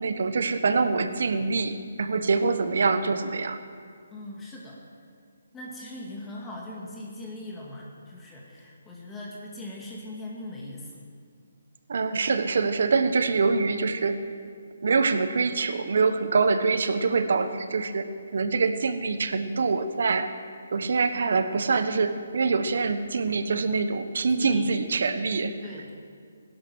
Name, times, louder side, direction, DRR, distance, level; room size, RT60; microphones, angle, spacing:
voice 1, 0.0-3.6 11.9-14.2 14.8-18.0 18.3-20.3 20.7-25.5, right 4 dB, 65° right, 10 dB, 1.2 m, -25 dB
voice 2, 4.1-4.8 5.5-10.9 24.4-24.7 25.6-25.9, left 1 dB, 10° left, -3 dB, 1.9 m, -40 dB
18.0 x 11.0 x 6.2 m, 2.1 s
hypercardioid pair, 155°, 0 cm